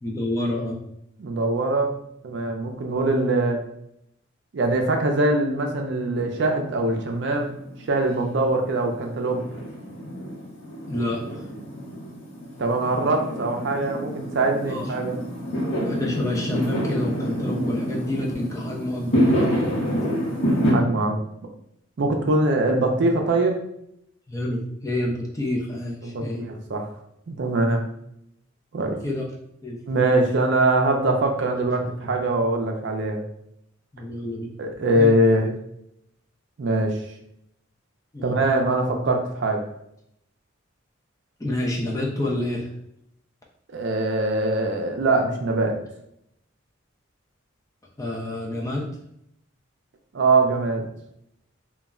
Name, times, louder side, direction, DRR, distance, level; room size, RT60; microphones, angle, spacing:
voice 1, 0.0-0.8 10.9-11.4 14.7-14.9 15.8-19.7 24.3-26.5 29.0-29.2 29.6-29.8 30.1-30.3 33.9-34.5 34.9-35.5 38.1-38.4 41.4-42.7 48.0-48.9, left 1 dB, 15° left, -2 dB, 0.4 m, -28 dB
voice 2, 1.2-1.9 2.2-3.6 4.5-7.5 7.9-9.4 12.6-15.2 20.7-21.2 22.0-23.6 26.0-26.8 27.3-27.8 28.7-29.0 29.9-33.2 34.6-35.5 36.6-37.0 38.2-39.6 43.7-45.8 50.1-50.8, right 2 dB, 60° right, 3 dB, 0.4 m, -22 dB
Fireworks, 6.2-20.7, equal, 75° left, 0.8 m, -28 dB
2.2 x 2.1 x 3.5 m, 0.74 s
head